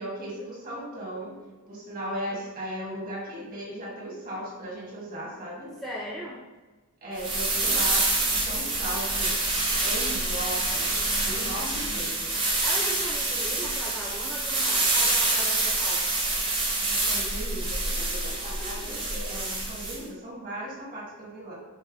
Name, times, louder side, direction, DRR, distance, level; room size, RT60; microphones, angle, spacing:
voice 1, 0.0-1.4 1.7-5.7 7.0-9.4 9.8-12.4 16.8-21.6, equal, 40° right, -5 dB, 1.3 m, -37 dB
voice 2, 5.8-6.4 12.6-16.1, equal, ahead, -6 dB, 0.3 m, -37 dB
sound 1, 7.2-20.0, right 2 dB, 20° right, 0.7 m, -27 dB
5.4 x 2.1 x 3.4 m, 1.2 s
head